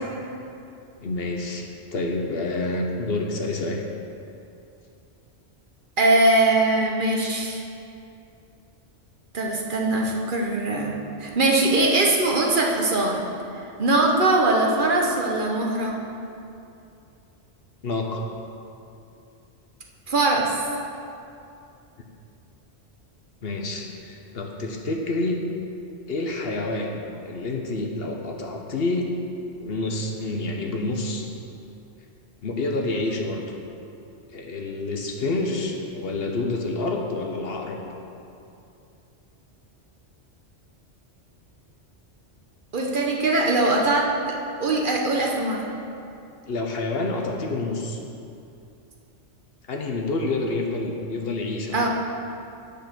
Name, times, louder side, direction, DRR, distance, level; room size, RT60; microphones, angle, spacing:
voice 1, 1.0-3.8 17.8-18.2 23.4-25.4 26.1-27.0 27.3-29.1 29.6-31.3 32.4-33.5 34.3-37.8 46.5-48.0 49.7-51.9, left 2 dB, 60° left, 1 dB, 1.0 m, -28 dB
voice 2, 6.0-7.6 9.3-13.2 13.8-16.0 20.1-20.5 42.7-44.1 44.6-45.6 51.7-51.9, right 2 dB, 50° right, -1 dB, 1.0 m, -21 dB
9.0 x 5.1 x 5.9 m, 2.7 s
omnidirectional pair, 1.2 m